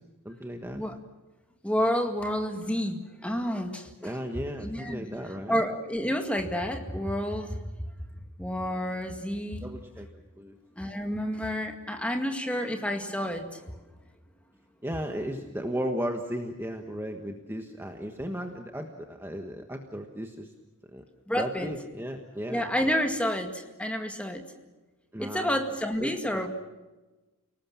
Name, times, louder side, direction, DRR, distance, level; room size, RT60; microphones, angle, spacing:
voice 1, 0.2-0.8 4.0-5.6 9.6-10.1 10.4-10.6 14.8-20.5 20.9-21.0 21.3-23.0 25.1-25.6 26.0-26.5, equal, 10° right, 4 dB, 1.4 m, -35 dB
voice 2, 1.6-4.1 4.6-5.1 5.5-7.9 8.4-9.6 10.8-13.7 21.3-21.7 22.5-24.4 25.2-26.5, equal, 5° left, 4 dB, 2.0 m, -30 dB
29.5 x 19.0 x 7.3 m, 1.2 s
head